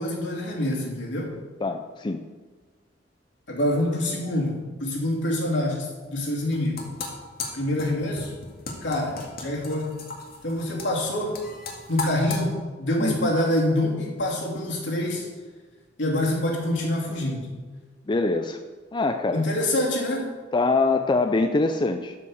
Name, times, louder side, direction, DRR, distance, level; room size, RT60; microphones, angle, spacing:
voice 1, 0.0-1.3 3.5-6.8 7.5-8.3 8.8-9.9 10.4-11.4 11.9-15.3 16.0-17.5 19.3-20.3, left 1 dB, 70° left, -2 dB, 2.9 m, -26 dB
voice 2, 1.6-2.2 13.0-13.3 18.1-18.6 18.9-19.4 20.5-22.1, left 3 dB, 25° left, 7 dB, 0.5 m, -24 dB
sound 1, 6.4-12.4, left 3 dB, 55° left, 2.0 m, -36 dB
12.5 x 5.8 x 6.4 m, 1.4 s
head